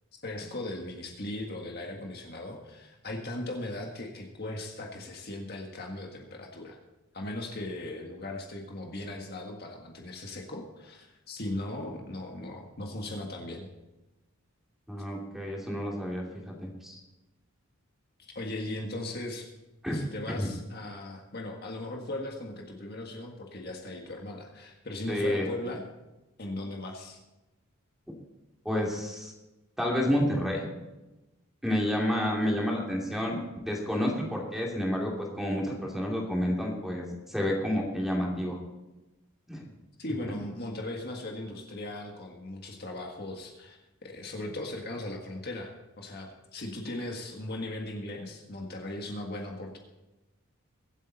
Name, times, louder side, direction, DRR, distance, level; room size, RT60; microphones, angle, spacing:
voice 1, 0.1-6.8 7.1-13.7 18.2-19.5 19.9-25.8 26.4-27.2 40.0-49.8, left 1 dB, 45° left, 1 dB, 1.7 m, -38 dB
voice 2, 14.9-17.0 19.8-19.9 20.3-20.5 25.1-25.5 28.6-29.3 29.8-30.7 31.6-38.6 39.5-39.6, equal, ahead, -2 dB, 2.9 m, -30 dB
24.0 x 8.4 x 4.2 m, 1.0 s
head